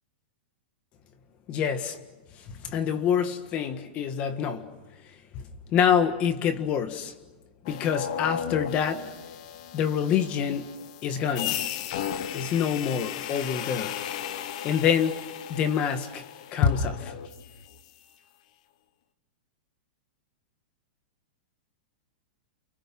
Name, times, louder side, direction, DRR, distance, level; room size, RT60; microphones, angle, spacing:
voice 1, 1.5-2.0 2.6-4.7 5.7-7.1 7.7-9.1 9.7-10.8 11.0-11.7 12.3-14.0 14.6-15.2 15.5-16.2 16.5-17.1, left 8 dB, 25° left, 1.7 m, -26 dB
sound 1, 7.7-17.8, left 9 dB, 45° left, 1.3 m, -35 dB
30.0 x 28.0 x 6.1 m
supercardioid pair, 170°, 5 cm